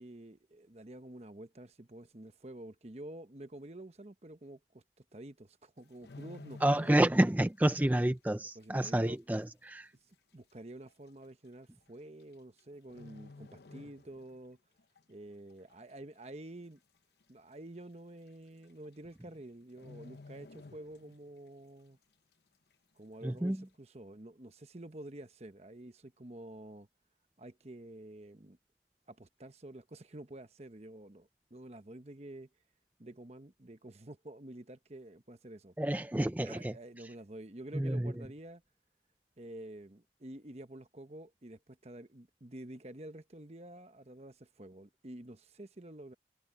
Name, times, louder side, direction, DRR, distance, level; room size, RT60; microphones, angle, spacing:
voice 1, 0.0-6.9 8.5-9.2 10.1-14.6 15.1-16.8 17.3-22.0 23.0-26.9 27.4-28.6 29.1-32.5 33.0-35.7 36.4-38.6 39.4-46.1, right 1 dB, 35° right, 1.0 m, -49 dB
sound 1, 5.8-7.5 7.8-8.1 8.6-8.7 9.6-9.7 9.9-10.0 10.9-11.1 12.2-12.6 12.9-14.4 14.8-15.0 15.5-16.0 16.4-16.5 16.7-16.8 17.2-17.3 18.3-18.4 18.6-18.9 19.2-19.3 19.7-21.4 21.7-21.8, left 3 dB, 65° left, 0.8 m, -52 dB
voice 2, 6.6-9.9 23.2-23.6 35.8-36.7 37.7-38.1, right 1 dB, 10° right, 0.4 m, -29 dB
head